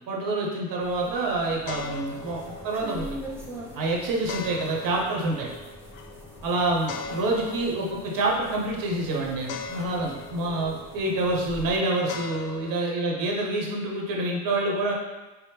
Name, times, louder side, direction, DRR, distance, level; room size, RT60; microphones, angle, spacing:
voice 1, 0.1-2.4 2.6-3.1 3.7-5.5 6.4-14.9, right 2 dB, 45° right, -1 dB, 1.0 m, -27 dB
sound 1, 0.8-11.8, right 1 dB, 5° right, 0.6 m, -44 dB
sound 2, 1.6-12.7, left 5 dB, 50° left, 0.5 m, -41 dB
4.2 x 2.1 x 3.4 m, 1.1 s
hypercardioid pair, 65°, 47 cm